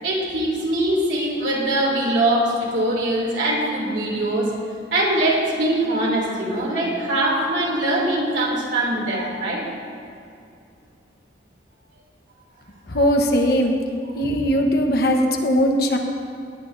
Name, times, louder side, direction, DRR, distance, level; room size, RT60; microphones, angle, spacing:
voice 1, 0.0-4.5 4.9-9.6 14.2-14.3, right 1 dB, 70° right, -3 dB, 2.9 m, -22 dB
voice 2, 12.9-13.8 14.2-16.0, equal, 55° left, 2 dB, 1.1 m, -19 dB
18.5 x 11.0 x 2.7 m, 2.5 s
head